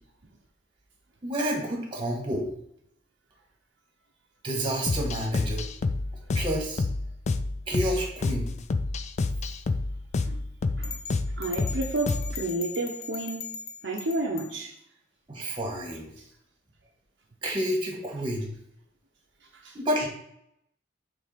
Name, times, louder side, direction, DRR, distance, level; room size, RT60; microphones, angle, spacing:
voice 1, 1.2-2.5 4.4-5.7 6.3-6.8 7.7-8.5 15.3-16.1 17.4-18.6 19.7-20.1, right 1 dB, 25° right, 1.6 m, -29 dB
sound 1, 4.9-12.5, left 3 dB, 40° left, 0.4 m, -29 dB
sound 2, 10.8-14.5, left 5 dB, 60° left, 0.7 m, -39 dB
voice 2, 11.4-13.5 13.8-14.7 19.6-19.7, right 2 dB, 65° right, 0.8 m, -31 dB
6.6 x 3.6 x 5.1 m
head